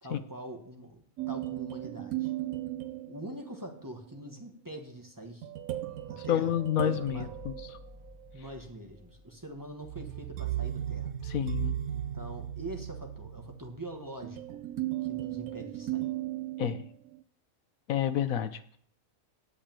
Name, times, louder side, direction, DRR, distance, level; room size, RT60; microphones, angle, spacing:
voice 1, 0.0-2.3 3.1-5.5 6.1-7.3 8.3-11.1 11.9-14.6 15.0-16.1, right 1 dB, 15° right, 3 dB, 1.4 m, -44 dB
sound 1, 1.2-3.8 5.4-8.4 9.8-17.2, right 13 dB, 80° right, 1.2 m, -36 dB
voice 2, 6.2-7.8 11.3-11.8 16.6-16.8 17.9-18.8, left 10 dB, 75° left, 11 dB, 1.3 m, -30 dB
sound 2, 6.9-10.3, left 3 dB, 10° left, 5.8 m, -53 dB
8.5 x 8.3 x 9.0 m, 0.63 s
omnidirectional pair, 1.5 m